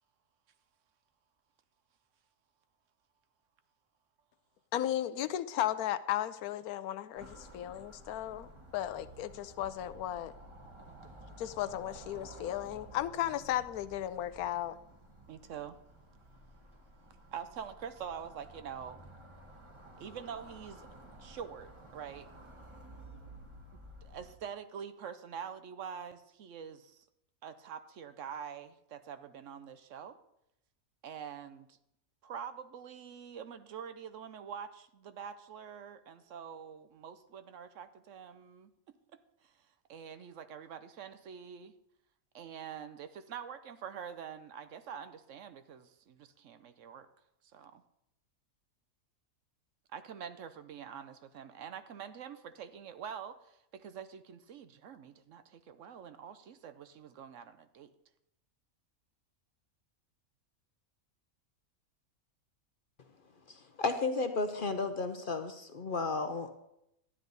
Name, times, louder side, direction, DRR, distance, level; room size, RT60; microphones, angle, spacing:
voice 1, 4.7-10.3 11.4-14.8, left 12 dB, 90° left, 15 dB, 1.1 m, -35 dB
sound 1, 7.2-24.4, right 1 dB, 20° right, 1.2 m, -53 dB
voice 2, 15.3-15.8 17.3-19.0 20.0-20.9 21.2-22.3 23.7-27.0 27.4-30.2 31.0-31.8 32.2-38.7 39.4-39.5 39.9-41.7 42.3-47.1 47.5-47.8 49.9-57.9, right 7 dB, 65° right, 11 dB, 0.9 m, -45 dB
voice 3, 63.5-66.6, left 3 dB, 50° left, 8 dB, 0.7 m, -33 dB
13.0 x 9.8 x 4.0 m, 0.80 s
omnidirectional pair, 1.5 m